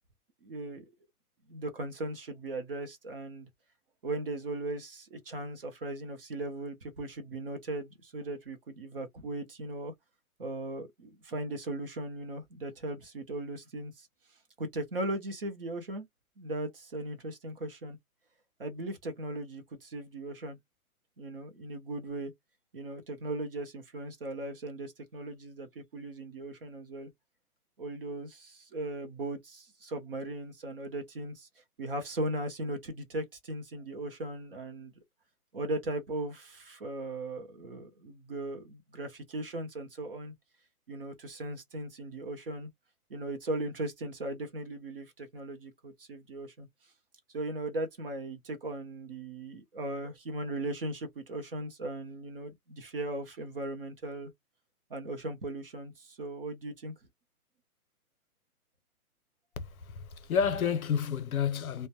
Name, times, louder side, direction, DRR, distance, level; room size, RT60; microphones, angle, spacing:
voice 1, 0.4-0.9 1.5-3.5 4.0-9.9 10.4-14.1 14.6-16.1 16.4-18.0 18.6-20.6 21.2-22.3 22.7-27.1 27.8-34.9 35.5-40.3 40.9-42.7 43.1-46.7 47.3-54.3 54.9-56.9, right 2 dB, 40° right, 0.6 m, -38 dB
voice 2, 59.6-61.9, left 7 dB, 70° left, 0.7 m, -30 dB
2.1 x 2.1 x 2.7 m
hypercardioid pair, 160°, 45 cm